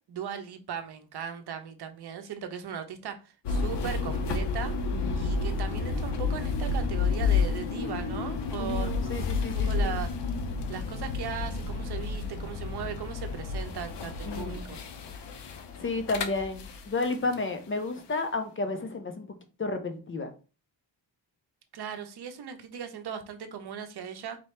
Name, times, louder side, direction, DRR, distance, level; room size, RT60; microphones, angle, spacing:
voice 1, 0.1-4.7 5.2-10.1 10.7-14.8 21.7-24.4, right 8 dB, 60° right, 0.8 m, -38 dB
sound 1, 3.4-17.4, left 4 dB, 65° left, 0.7 m, -31 dB
voice 2, 4.9-5.4 8.6-9.9 14.2-14.6 15.8-19.3 19.6-20.3, left 3 dB, 30° left, 0.5 m, -32 dB
4.3 x 2.7 x 3.2 m
wide cardioid pair, 130°, 46 cm